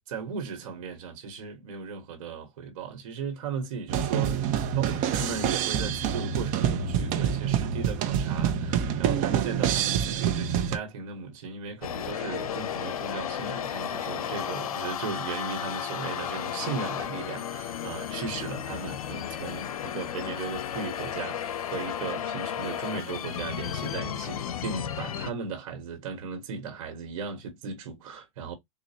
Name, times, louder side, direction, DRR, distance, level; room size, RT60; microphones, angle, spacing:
voice 1, 0.1-28.5, right 5 dB, 65° right, 1.6 m, -37 dB
sound 1, 3.9-10.8, right 8 dB, 45° right, 0.9 m, -26 dB
sound 2, 11.8-25.3, left 9 dB, 80° left, 0.6 m, -33 dB
4.2 x 2.6 x 2.9 m
hypercardioid pair, 110°, 18 cm